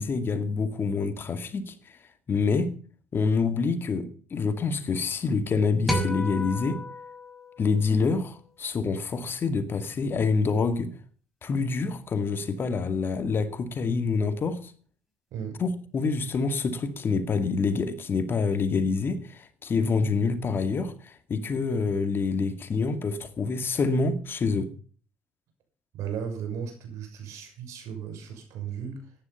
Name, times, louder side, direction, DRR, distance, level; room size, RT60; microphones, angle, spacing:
voice 1, 0.0-1.7 2.3-2.7 3.1-6.8 7.6-10.9 11.4-14.7 15.6-24.7, left 4 dB, 45° left, 2.1 m, -27 dB
sound 1, 5.9-8.4, equal, ahead, 5.9 m, -33 dB
voice 2, 15.3-15.6 25.9-29.1, right 7 dB, 70° right, 6.4 m, -35 dB
14.5 x 10.5 x 5.7 m
supercardioid pair, 65°, 5 cm